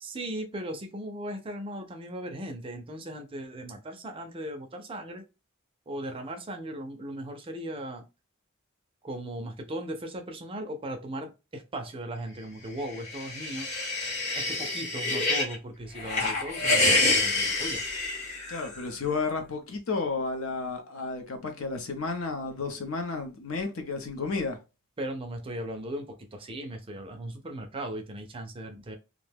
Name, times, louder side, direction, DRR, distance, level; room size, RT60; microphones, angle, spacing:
voice 1, 0.0-5.2 5.9-8.0 9.0-13.7 14.3-17.8 25.0-29.0, right 1 dB, 25° right, 0.4 m, -37 dB
sound 1, 12.9-15.5 15.9-18.8, left 2 dB, 35° left, 0.8 m, -27 dB
voice 2, 18.5-24.6, left 4 dB, 65° left, 0.7 m, -32 dB
2.5 x 2.2 x 3.3 m
head